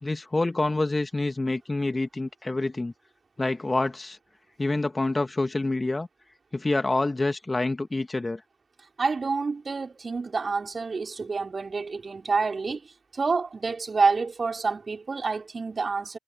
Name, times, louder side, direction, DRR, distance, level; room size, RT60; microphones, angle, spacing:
voice 1, 0.0-2.9 3.4-4.2 4.6-6.1 6.5-8.4, left 2 dB, 15° left, 2.6 m, -27 dB
voice 2, 9.0-16.2, right 4 dB, 30° right, 4.7 m, -28 dB
figure-of-eight pair, 45°, 0 cm